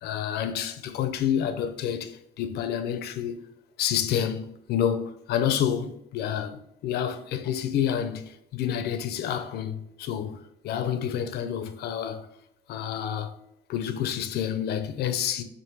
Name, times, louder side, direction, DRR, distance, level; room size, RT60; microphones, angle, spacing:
voice 1, 0.0-3.4 3.8-10.4 10.6-12.3 12.7-13.3 13.7-15.4, left 9 dB, 75° left, 0.8 m, -29 dB
7.2 x 2.9 x 4.7 m
cardioid pair, 110°, 17 cm